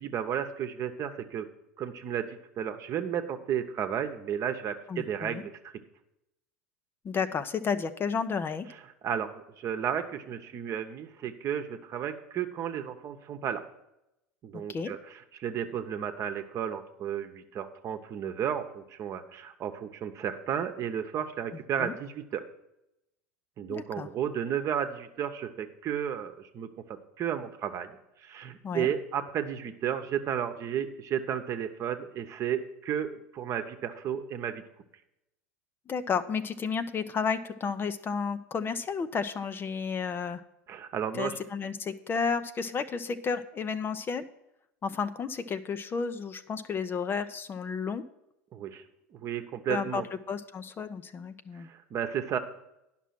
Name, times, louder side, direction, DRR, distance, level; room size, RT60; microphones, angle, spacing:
voice 1, 0.0-1.5 1.8-5.5 9.0-13.6 14.4-15.0 15.4-22.4 23.6-34.6 40.7-41.4 48.5-48.8 49.1-50.0 51.5-52.4, right 9 dB, 40° right, 7 dB, 1.0 m, -33 dB
voice 2, 4.9-5.4 7.0-8.7 14.5-14.9 21.8-21.9 23.7-24.1 28.6-28.9 35.9-40.4 41.1-44.2 44.8-48.0 49.7-50.0 50.3-51.7, left 5 dB, 30° left, 11 dB, 0.6 m, -32 dB
10.0 x 6.1 x 5.8 m, 0.86 s
hypercardioid pair, 85°, 8 cm